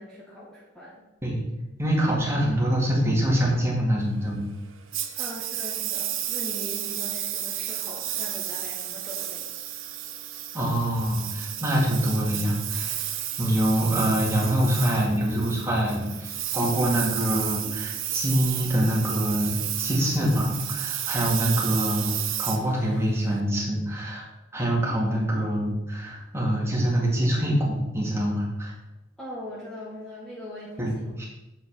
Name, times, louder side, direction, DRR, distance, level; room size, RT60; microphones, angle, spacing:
voice 1, 0.0-1.0 5.2-9.5 29.2-31.1, left 1 dB, 5° left, -8 dB, 1.8 m, -40 dB
voice 2, 1.8-4.4 10.5-13.1 13.4-24.2 24.5-28.7 30.8-31.2, equal, 15° right, -4 dB, 2.4 m, -25 dB
Engine, 4.9-23.4, right 12 dB, 75° right, 0.9 m, -32 dB
7.5 x 6.3 x 5.9 m, 1.0 s
head